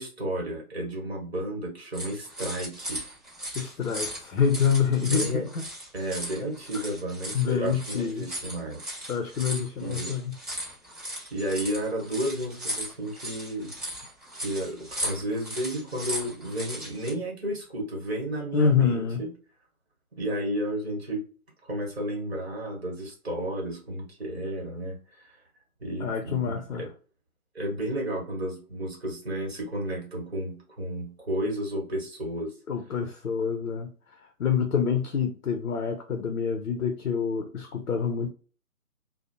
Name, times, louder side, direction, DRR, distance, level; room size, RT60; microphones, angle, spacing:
voice 1, 0.0-3.0 5.0-5.5 5.9-8.9 9.8-10.1 11.3-13.7 14.3-19.3 20.1-21.2 21.7-25.0 25.2-25.4 25.8-26.9 27.5-32.5, right 1 dB, 45° right, 1.1 m, -32 dB
sound 1, 1.9-17.1, equal, 25° right, 0.7 m, -37 dB
voice 2, 3.5-5.4 6.7-6.9 7.3-8.3 9.1-10.4 18.5-19.2 26.0-26.9 32.7-38.3, left 6 dB, 65° left, 0.5 m, -27 dB
2.5 x 2.0 x 2.6 m
figure-of-eight pair, 150°, 45 cm